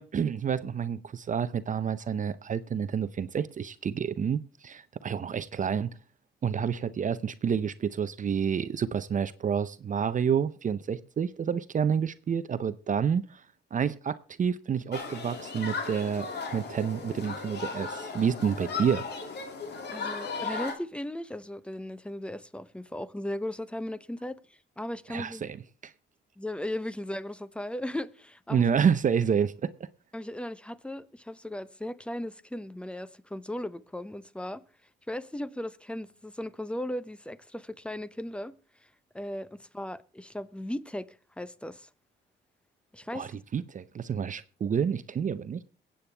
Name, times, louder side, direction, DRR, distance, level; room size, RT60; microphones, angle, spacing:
voice 1, 0.0-5.9 6.4-13.4 13.7-16.3 16.5-19.1 25.1-25.6 28.5-29.7 43.1-45.6, right 7 dB, 40° right, 0.6 m, -29 dB
Human group actions, 14.9-20.7, left 4 dB, 60° left, 2.6 m, -36 dB
voice 2, 19.9-24.4 24.8-25.5 26.4-28.7 30.1-34.6 35.1-38.5 39.1-41.9 42.9-43.4, left 1 dB, 5° left, 0.7 m, -37 dB
22.5 x 8.6 x 3.4 m
cardioid pair, 90°, 20 cm